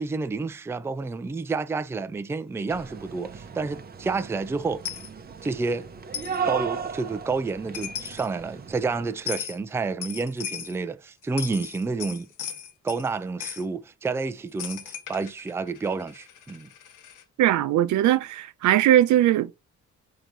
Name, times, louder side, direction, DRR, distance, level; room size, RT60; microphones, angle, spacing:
voice 1, 0.0-4.8 5.4-5.9 6.4-12.3 12.8-16.7, right 4 dB, 10° right, 0.3 m, -29 dB
sound 1, 2.7-9.2, right 6 dB, 30° right, 0.7 m, -36 dB
Coin (dropping), 4.8-5.1 6.1-6.4 7.5-7.6 7.7-8.3 9.3-9.6 10.0-10.8 11.2-13.1 13.4-13.6 14.6-17.2, left 8 dB, 90° left, 0.9 m, -37 dB
voice 2, 17.4-19.5, right 12 dB, 75° right, 0.5 m, -20 dB
4.5 x 2.9 x 3.8 m
cardioid pair, 90°, 30 cm